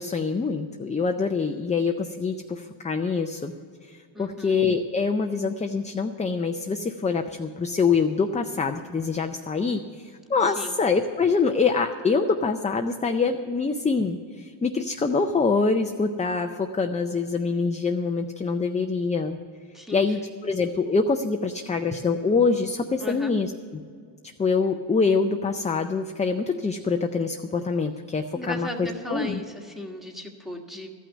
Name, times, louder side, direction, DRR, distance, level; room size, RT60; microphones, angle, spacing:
voice 1, 0.0-3.5 3.8-19.4 19.9-23.8 24.4-29.4, left 4 dB, 15° left, 5 dB, 0.4 m, -25 dB
voice 2, 4.1-4.6 10.4-10.8 19.7-20.0 23.0-23.3 28.3-30.9, left 1 dB, ahead, 1 dB, 1.4 m, -36 dB
13.5 x 5.9 x 9.6 m, 2.1 s
cardioid pair, 115°, 46 cm